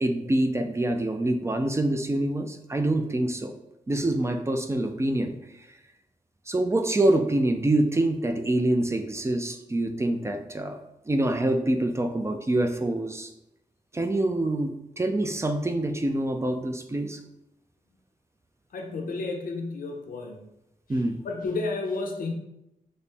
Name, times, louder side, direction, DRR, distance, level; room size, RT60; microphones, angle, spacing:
voice 1, 0.0-3.5 3.9-5.3 6.5-10.8 11.1-13.3 13.9-14.7 15.0-17.2 20.9-21.2, right 1 dB, 20° right, 5 dB, 0.3 m, -25 dB
voice 2, 18.7-20.4 21.2-22.3, left 3 dB, 85° left, 2 dB, 0.6 m, -31 dB
4.2 x 2.0 x 3.4 m, 0.87 s
wide cardioid pair, 95°, 14 cm